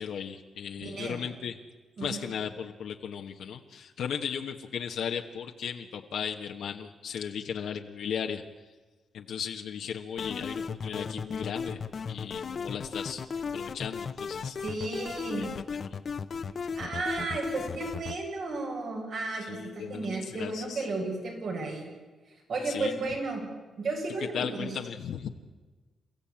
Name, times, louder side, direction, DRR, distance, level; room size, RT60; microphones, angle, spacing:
voice 1, 0.0-1.6 2.0-8.4 9.1-11.8 12.1-13.2 13.5-14.6 15.4-15.5 15.9-16.0 19.4-20.8 22.6-22.9 24.3-25.3, left 7 dB, 85° left, 2 dB, 1.3 m, -36 dB
voice 2, 0.8-1.2 2.0-2.3 14.6-15.5 16.7-21.9 22.3-23.5 23.8-24.7, right 3 dB, 70° right, 0 dB, 7.5 m, -33 dB
sound 1, 10.2-18.2, left 5 dB, 50° left, 1.0 m, -36 dB
29.0 x 15.0 x 8.7 m, 1.3 s
cardioid pair, 105°, 0 cm